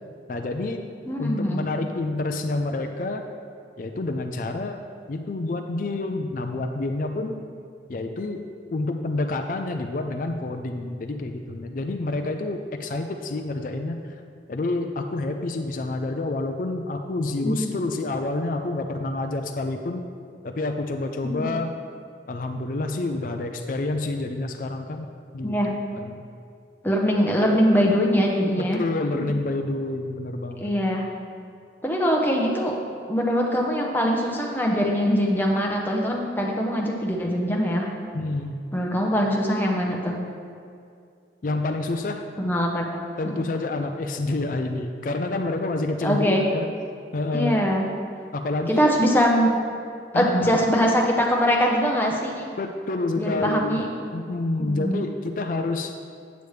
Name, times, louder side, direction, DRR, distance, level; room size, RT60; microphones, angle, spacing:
voice 1, 0.3-0.8 1.2-3.2 3.8-4.8 5.1-7.4 7.9-14.1 14.5-20.0 20.4-21.7 22.3-25.1 25.3-26.2 28.6-30.7 38.1-38.6 41.4-42.3 43.2-46.7 47.1-47.6 48.3-48.8 50.1-50.6 52.6-53.8 54.1-56.0, left 2 dB, 45° left, 5 dB, 0.4 m, -28 dB
voice 2, 1.1-1.6 17.4-17.6 21.2-21.5 25.4-25.7 26.8-28.8 30.6-31.1 31.8-32.8 33.1-37.9 38.7-40.2 42.4-43.5 46.0-46.5 47.3-47.8 48.8-49.5 50.1-52.5 53.2-53.8 54.6-55.0, equal, 10° left, -1 dB, 0.8 m, -22 dB
8.6 x 8.0 x 3.2 m, 2.3 s
head